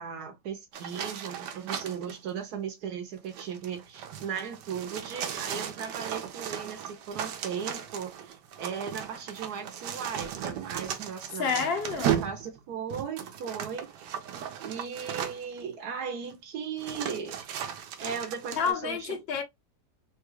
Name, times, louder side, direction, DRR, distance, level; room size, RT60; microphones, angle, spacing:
voice 1, 0.0-11.6 11.9-14.2 14.6-17.4 18.0-19.2, right 7 dB, 70° right, 1.2 m, -37 dB
sound 1, 0.7-2.2 3.2-15.6 16.3-16.4 16.8-18.7, right 9 dB, 90° right, 1.3 m, -36 dB
voice 2, 11.3-12.2 18.5-19.4, left 6 dB, 65° left, 0.6 m, -29 dB
3.8 x 2.3 x 3.0 m
omnidirectional pair, 1.8 m